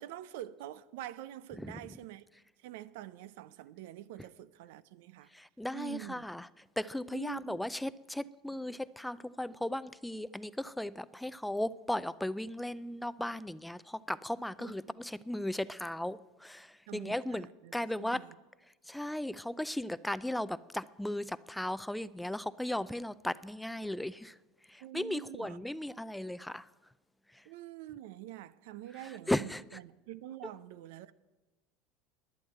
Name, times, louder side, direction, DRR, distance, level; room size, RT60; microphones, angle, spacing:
voice 1, 0.0-2.2 2.6-5.3 5.7-6.3 7.1-7.6 14.6-14.7 16.9-17.7 18.0-18.4 24.8-25.6 27.5-31.1, right 13 dB, 70° right, 0.6 m, -46 dB
voice 2, 5.3-6.5 6.8-17.5 17.7-18.2 18.9-24.3 24.7-26.7 29.3-29.6, left 1 dB, 5° left, 0.4 m, -36 dB
11.5 x 9.4 x 9.0 m
hypercardioid pair, 80°, 0 cm